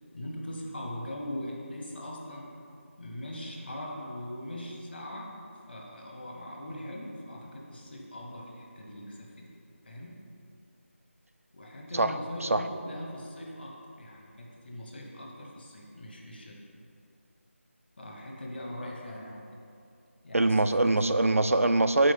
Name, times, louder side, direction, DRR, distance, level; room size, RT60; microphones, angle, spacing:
voice 1, 0.1-2.5 3.0-5.3 5.7-9.5 9.8-10.2 11.5-16.6 18.0-19.4 20.2-20.9, left 1 dB, 45° left, -1 dB, 1.1 m, -41 dB
voice 2, 11.9-12.7 20.3-22.1, right 2 dB, 85° right, 10 dB, 0.4 m, -24 dB
8.4 x 3.2 x 5.3 m, 2.5 s
figure-of-eight pair, 165°, 7 cm